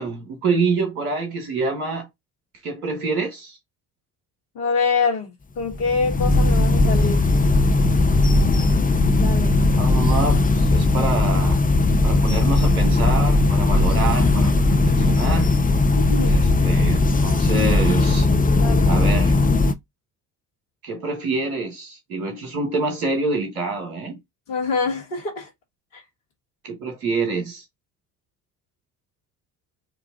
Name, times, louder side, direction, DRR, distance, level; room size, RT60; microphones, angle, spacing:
voice 1, 0.0-2.1 2.6-3.6 9.8-11.6 12.0-15.5 16.3-18.3 18.9-19.4 20.8-24.2 26.6-27.6, right 3 dB, 85° right, 1.0 m, -26 dB
voice 2, 4.5-7.3 9.2-9.5 15.9-16.4 18.6-18.9 24.5-25.5 25.9-26.0, left 5 dB, 80° left, 1.6 m, -25 dB
sound 1, 5.6-19.7, left 2 dB, 20° left, 0.7 m, -18 dB
4.8 x 2.4 x 3.6 m
figure-of-eight pair, 45°, 43 cm